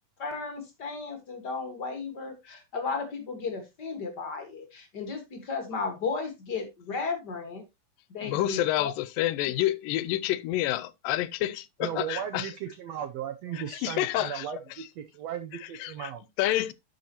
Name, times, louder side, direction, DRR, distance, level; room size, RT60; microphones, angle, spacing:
voice 1, 0.2-7.6 8.1-8.9, left 4 dB, 40° left, 1.6 m, -34 dB
voice 2, 8.2-12.5 13.5-14.4 15.8-16.1 16.4-16.7, left 15 dB, 85° left, 2.3 m, -28 dB
voice 3, 11.8-14.6 15.1-16.2, right 10 dB, 80° right, 1.5 m, -36 dB
11.0 x 6.8 x 2.9 m
omnidirectional pair, 3.9 m